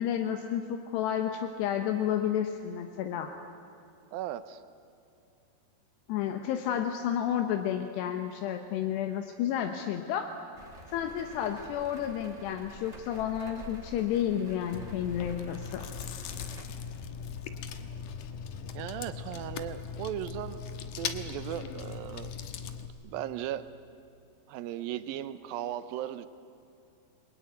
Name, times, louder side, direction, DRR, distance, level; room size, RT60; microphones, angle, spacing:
voice 1, 0.0-3.3 6.1-10.3 10.9-15.8, left 10 dB, 80° left, 6 dB, 3.2 m, -31 dB
voice 2, 4.1-4.6 18.7-20.6 21.0-22.3 23.0-23.6 24.5-26.3, right 12 dB, 75° right, 12 dB, 2.3 m, -37 dB
sound 1, 10.5-16.6, right 1 dB, 15° right, 1.8 m, -48 dB
Chewing mastication, 14.7-22.9, left 7 dB, 65° left, 2.2 m, -39 dB
29.0 x 21.0 x 9.4 m, 2.7 s
omnidirectional pair, 4.9 m